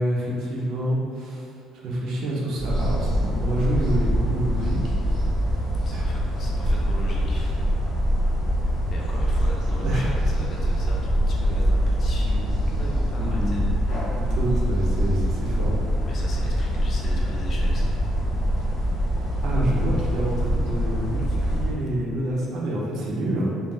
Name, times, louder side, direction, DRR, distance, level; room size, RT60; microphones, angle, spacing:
voice 1, 0.0-1.5 1.7-5.0 5.9-6.0 7.4-7.5 9.8-10.1 13.2-13.6 14.1-15.8 19.4-23.5, right 1 dB, 65° right, -4 dB, 0.6 m, -27 dB
sound 1, 2.6-21.8, equal, 70° left, 0.7 m, -24 dB
voice 2, 5.9-7.5 8.9-13.7 16.1-18.0, left 2 dB, 45° left, -3 dB, 0.4 m, -39 dB
3.3 x 2.1 x 2.5 m, 2.4 s
cardioid pair, 105°, 0 cm